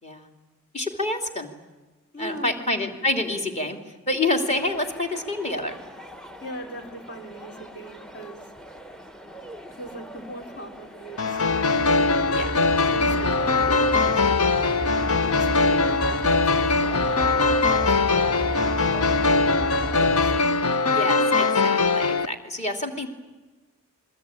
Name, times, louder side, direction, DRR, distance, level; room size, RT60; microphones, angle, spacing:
voice 1, 0.7-1.5 2.2-3.8 4.1-5.8 12.3-12.5 20.9-23.1, left 2 dB, 30° left, 3 dB, 3.0 m, -27 dB
voice 2, 2.1-2.6 6.4-8.5 9.7-12.1 12.9-16.6 17.7-19.6 19.9-20.3, right 1 dB, 50° left, 4 dB, 4.0 m, -41 dB
sound 1, 4.6-20.4, right 1 dB, 5° left, 0.8 m, -35 dB
sound 2, 11.2-22.3, left 3 dB, 75° left, 0.9 m, -21 dB
27.5 x 22.0 x 9.0 m, 1.2 s
head